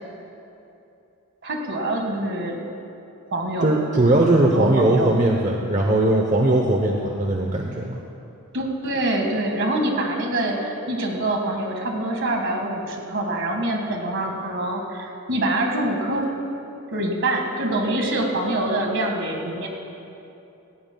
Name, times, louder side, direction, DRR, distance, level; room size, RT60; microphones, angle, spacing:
voice 1, 1.4-2.6 3.3-3.8 4.3-5.2 8.5-16.3 16.9-19.7, right 1 dB, 55° right, 2 dB, 1.7 m, -25 dB
voice 2, 3.6-8.0, right 1 dB, 35° right, 1 dB, 0.7 m, -19 dB
18.0 x 17.0 x 2.3 m, 2.8 s
head